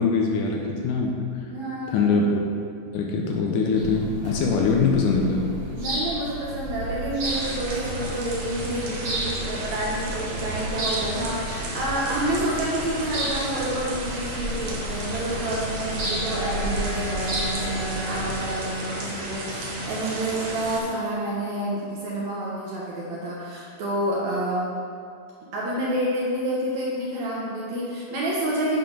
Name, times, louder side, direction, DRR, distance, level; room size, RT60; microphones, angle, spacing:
voice 1, 0.0-1.4 1.9-2.5 2.9-5.4 10.4-10.5, left 4 dB, 80° left, 0 dB, 2.0 m, -23 dB
voice 2, 1.5-2.1 5.7-24.7 25.5-28.8, right 1 dB, 70° right, -5 dB, 1.8 m, -29 dB
sound 1, 3.7-18.4, right 1 dB, 55° right, 1.3 m, -33 dB
sound 2, 7.2-20.8, right 2 dB, 85° right, 2.9 m, -34 dB
sound 3, 14.7-21.1, right 1 dB, 50° left, 2.3 m, -35 dB
7.0 x 4.4 x 5.3 m, 2.4 s
omnidirectional pair, 4.0 m